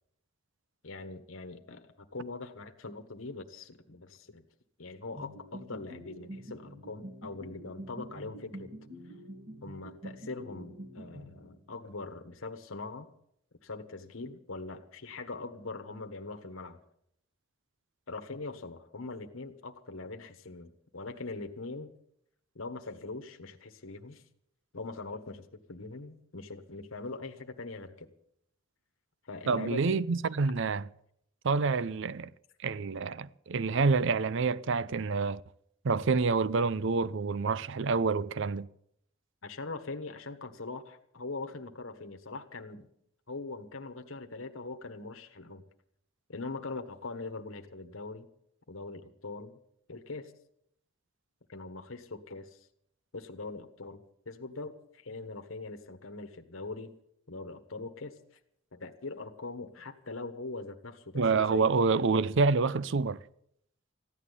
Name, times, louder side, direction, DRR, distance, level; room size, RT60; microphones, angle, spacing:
voice 1, 0.8-4.4 4.8-8.7 9.6-13.1 13.6-16.8 18.1-21.9 22.5-24.2 24.7-28.1 29.3-30.0 39.4-42.9 43.3-45.6 46.3-48.3 48.7-49.5 49.9-50.3 51.5-52.7 53.1-56.9 57.3-58.1 58.7-61.7, left 3 dB, 85° left, 1.4 m, -42 dB
sound 1, 5.2-11.9, equal, 40° right, 2.2 m, -46 dB
voice 2, 29.5-30.8 31.4-32.3 32.6-35.4 35.8-38.7 61.1-63.2, right 4 dB, 65° right, 0.6 m, -27 dB
15.5 x 11.0 x 8.3 m
head